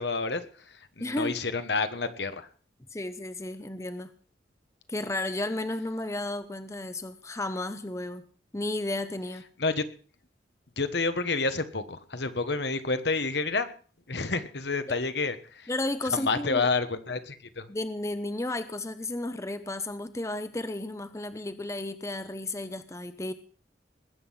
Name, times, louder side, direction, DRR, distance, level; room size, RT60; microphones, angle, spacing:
voice 1, 0.0-2.5 9.6-9.8 10.8-13.7 14.1-15.7 16.1-17.7, left 3 dB, 65° left, 10 dB, 1.3 m, -29 dB
voice 2, 1.0-1.3 2.9-4.1 4.9-8.3 8.5-9.5 15.7-16.7 17.7-23.3, left 2 dB, 15° left, 11 dB, 0.8 m, -33 dB
20.5 x 8.5 x 5.7 m, 0.42 s
head